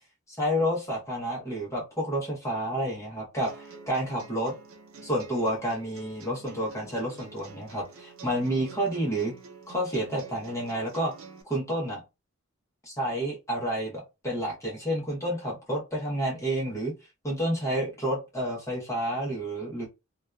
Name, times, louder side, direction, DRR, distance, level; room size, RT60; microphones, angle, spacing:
voice 1, 0.3-4.5 5.0-9.3 9.7-11.1 11.4-12.0 12.8-16.9 17.2-19.9, equal, 15° left, -4 dB, 0.8 m, -30 dB
sound 1, 3.4-11.4, right 4 dB, 85° right, 0.6 m, -48 dB
2.6 x 2.3 x 2.2 m, 0.26 s
head